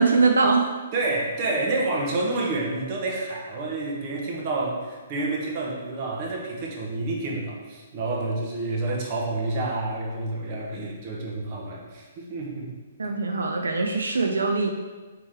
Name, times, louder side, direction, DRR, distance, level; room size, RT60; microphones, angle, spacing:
voice 1, 0.0-0.7 13.0-14.7, right 4 dB, 90° right, 3 dB, 0.3 m, -22 dB
voice 2, 0.9-12.7 13.0-13.1, right 2 dB, 40° right, -2 dB, 0.8 m, -29 dB
3.5 x 2.9 x 3.2 m, 1.3 s
hypercardioid pair, 145°, 0 cm